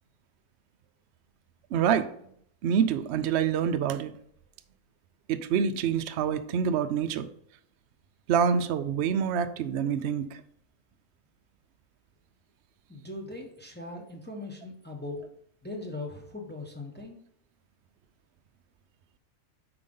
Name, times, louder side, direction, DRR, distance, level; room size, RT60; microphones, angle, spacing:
voice 1, 1.7-2.1 2.6-4.1 5.3-7.3 8.3-10.3, right 7 dB, 65° right, 0.7 m, -26 dB
voice 2, 12.9-15.2 15.6-17.2, left 2 dB, 10° left, 0.9 m, -39 dB
7.8 x 5.0 x 3.8 m
omnidirectional pair, 1.5 m